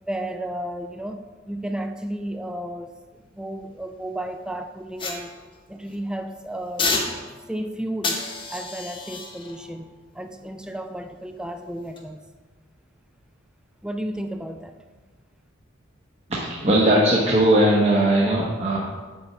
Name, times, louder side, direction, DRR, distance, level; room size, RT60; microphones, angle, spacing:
voice 1, 0.0-3.0 3.3-5.4 5.7-7.0 7.5-12.2 13.8-14.8, right 1 dB, 5° right, 0.4 m, -33 dB
sound 1, 5.0-6.0 6.8-7.6 8.0-11.2 11.8-12.0, left 3 dB, 25° left, 1.0 m, -31 dB
voice 2, 16.5-18.8, right 1 dB, 30° right, 1.0 m, -18 dB
8.5 x 4.3 x 5.9 m
head